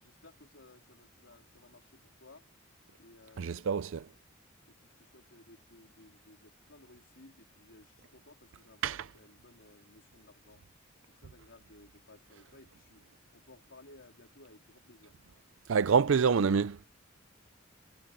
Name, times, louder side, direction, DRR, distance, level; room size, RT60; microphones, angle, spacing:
voice 1, 0.0-2.5 3.0-3.7 4.7-10.6 11.0-13.0 13.3-15.1, left 2 dB, 65° left, 3.7 m, -58 dB
voice 2, 3.4-4.0 8.8-9.1 15.7-16.9, right 6 dB, 70° right, 0.5 m, -27 dB
head